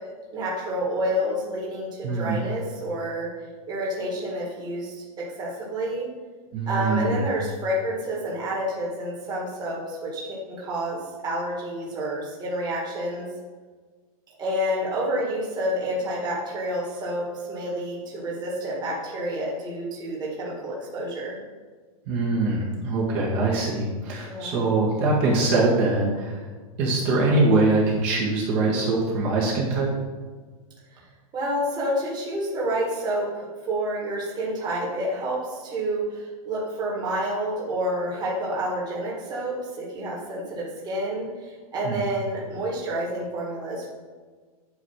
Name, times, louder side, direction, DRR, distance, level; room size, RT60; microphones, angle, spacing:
voice 1, 0.3-3.3 3.7-6.1 6.7-13.3 14.4-21.4 24.3-24.6 30.9-31.0 31.3-43.9, equal, 20° right, -5 dB, 2.0 m, -29 dB
voice 2, 2.0-2.4 6.5-7.2 22.1-26.4 26.8-29.9 41.8-42.0, right 2 dB, 45° right, -4 dB, 1.9 m, -23 dB
8.8 x 3.2 x 5.8 m, 1.5 s
supercardioid pair, 145°, 19 cm